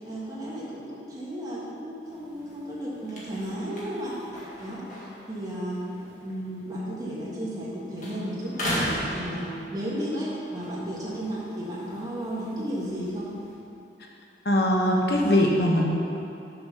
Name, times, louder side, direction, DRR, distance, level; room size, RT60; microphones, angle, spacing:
voice 1, 0.0-4.2 4.6-4.8 5.3-5.8 6.2-8.9 9.1-13.3, equal, 20° right, -7 dB, 1.6 m, -33 dB
sound 1, 2.1-7.7 8.0-10.0 10.5-13.5, equal, 45° left, 1.9 m, -37 dB
voice 2, 14.4-15.9, left 1 dB, 60° left, -1 dB, 1.1 m, -21 dB
6.7 x 6.2 x 6.1 m, 2.7 s
head